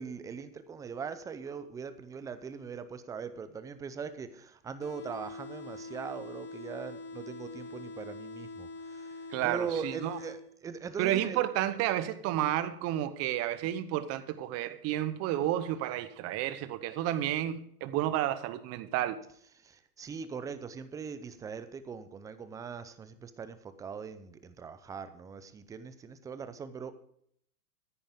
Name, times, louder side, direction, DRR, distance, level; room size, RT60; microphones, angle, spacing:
voice 1, 0.0-11.4 19.6-26.9, right 6 dB, 10° right, 0.4 m, -41 dB
sound 1, 4.8-10.8, left 2 dB, 25° left, 1.7 m, -44 dB
voice 2, 9.3-10.2 11.0-19.2, right 12 dB, 30° right, 1.0 m, -31 dB
13.5 x 10.5 x 3.6 m
hypercardioid pair, 115°, 47 cm